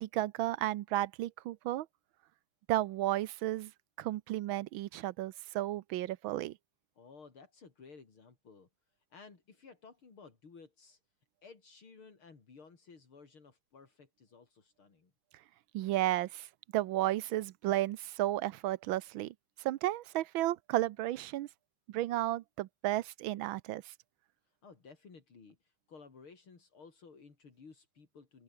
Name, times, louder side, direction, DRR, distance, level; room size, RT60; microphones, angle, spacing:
voice 1, 0.0-1.9 2.7-3.7 4.0-6.6 15.7-16.5 16.7-21.5 21.9-23.9, right 15 dB, 75° right, 1.4 m, -33 dB
voice 2, 7.0-8.7 9.1-11.0 11.4-15.1 24.5-28.4, left 5 dB, 75° left, 4.4 m, -56 dB
omnidirectional pair, 2.3 m